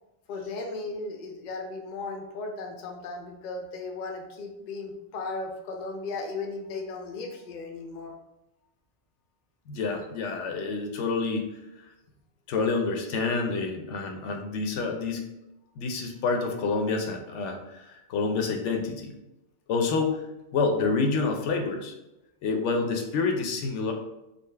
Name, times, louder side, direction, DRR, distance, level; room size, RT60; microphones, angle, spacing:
voice 1, 0.3-8.1, left 3 dB, 55° left, 3 dB, 0.5 m, -36 dB
voice 2, 9.7-11.5 12.5-15.3 15.8-19.1 19.7-20.2 20.5-21.9 22.4-23.9, left 4 dB, 80° left, 3 dB, 0.9 m, -28 dB
3.8 x 2.0 x 3.3 m, 0.94 s
omnidirectional pair, 1.2 m